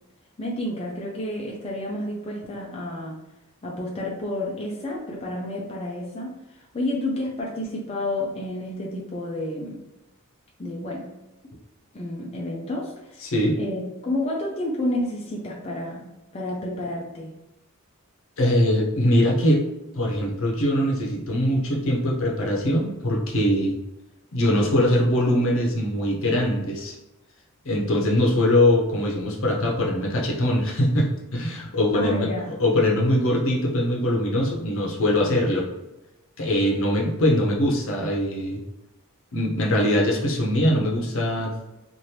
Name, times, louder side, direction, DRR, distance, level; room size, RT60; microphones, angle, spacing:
voice 1, 0.4-3.2 3.6-9.8 10.6-11.0 11.9-16.1 16.3-17.3 31.9-32.4, left 1 dB, 30° left, -3 dB, 0.4 m, -30 dB
voice 2, 13.2-13.6 18.4-19.6 19.9-23.8 24.3-26.9 27.6-35.7 36.4-38.6 39.3-41.5, left 1 dB, 65° left, -1 dB, 0.7 m, -22 dB
2.8 x 2.5 x 3.2 m, 0.98 s
head